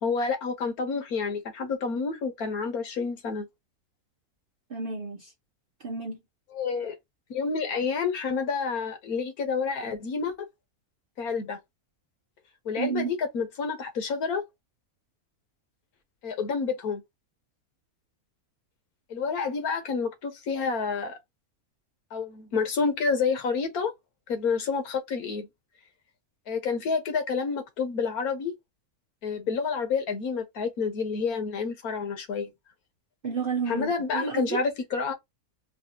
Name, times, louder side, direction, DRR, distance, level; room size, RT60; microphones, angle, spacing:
voice 1, 0.0-3.5 6.5-6.9 7.3-10.5 11.2-11.6 12.6-14.4 16.2-17.0 19.1-21.2 22.1-23.9 24.3-25.5 26.5-28.6 29.2-32.5 33.7-35.1, left 5 dB, 75° left, 1.5 m, -29 dB
voice 2, 4.7-5.3 5.8-6.2 12.8-13.1 33.2-34.6, right 5 dB, 60° right, 0.6 m, -31 dB
4.1 x 2.7 x 2.7 m
omnidirectional pair, 1.6 m